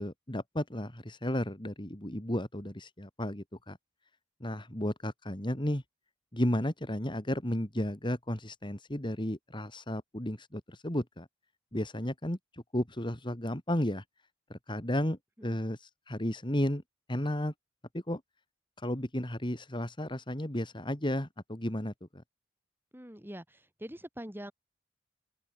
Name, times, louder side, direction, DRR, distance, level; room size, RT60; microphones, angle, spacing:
voice 1, 0.0-3.8 4.4-5.8 6.3-11.3 11.7-14.0 14.5-16.8 17.1-17.5 17.9-18.2 18.8-22.2, left 1 dB, 25° left, 3.2 m, -33 dB
voice 2, 22.9-24.5, equal, 10° right, 4.7 m, -44 dB
head